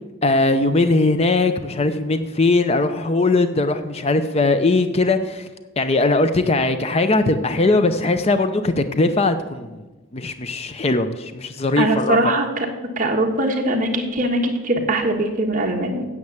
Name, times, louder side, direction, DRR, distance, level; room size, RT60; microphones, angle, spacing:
voice 1, 0.2-5.5 5.8-9.9 10.1-12.2, left 2 dB, 25° left, 10 dB, 0.5 m, -20 dB
voice 2, 11.8-12.5 13.0-16.1, right 1 dB, 35° right, 2 dB, 1.4 m, -21 dB
9.6 x 7.8 x 7.2 m, 1.2 s
head